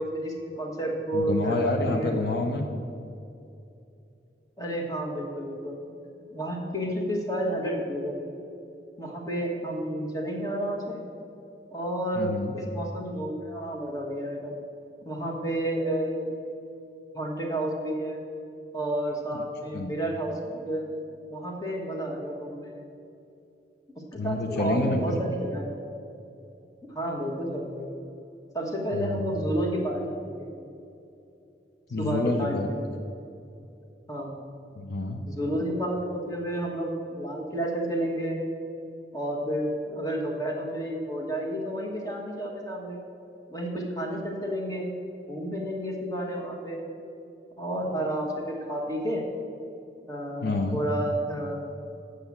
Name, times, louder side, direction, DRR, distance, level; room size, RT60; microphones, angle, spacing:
voice 1, 0.0-2.1 4.6-5.8 6.3-8.1 9.0-11.0 11.7-14.6 15.0-16.3 17.1-18.2 18.7-20.8 21.3-22.9 24.1-25.7 26.9-27.9 28.5-30.5 32.0-32.7 34.1-34.4 35.3-38.4 39.1-43.0 43.5-44.8 45.3-46.8 47.6-49.3 50.1-50.4 50.7-51.6, right 1 dB, 20° left, 0 dB, 1.4 m, -31 dB
voice 2, 1.1-2.7 12.2-12.5 19.7-19.9 24.2-25.2 28.9-29.2 31.9-32.7 34.8-35.3 50.4-50.8, left 2 dB, 60° left, 4 dB, 0.6 m, -28 dB
7.9 x 6.5 x 7.2 m, 2.7 s
head